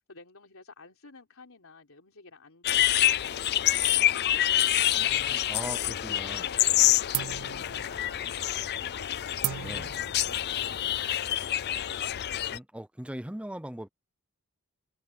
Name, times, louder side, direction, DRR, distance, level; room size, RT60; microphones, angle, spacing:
voice 1, 0.1-5.0 5.6-9.9 10.2-11.4, left 3 dB, 70° left, 3.8 m, -51 dB
sound 1, 2.6-12.6, left 13 dB, 50° left, 0.4 m, -27 dB
voice 2, 5.0-6.5 9.6-9.9 12.5-13.9, right 1 dB, 5° right, 0.8 m, -40 dB
sound 2, 5.8-6.1 6.4-6.8 7.1-12.3, right 15 dB, 75° right, 0.3 m, -39 dB
Wind instrument woodwind instrument, 7.9-11.6, right 3 dB, 35° right, 4.1 m, -56 dB
head